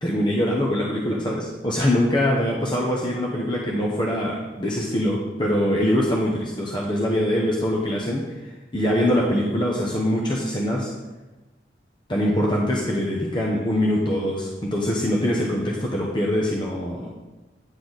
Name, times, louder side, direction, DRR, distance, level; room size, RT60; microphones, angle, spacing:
voice 1, 0.0-8.4 8.7-10.9 12.1-17.1, left 1 dB, 25° left, -3 dB, 0.9 m, -23 dB
9.8 x 6.8 x 4.0 m, 1.1 s
head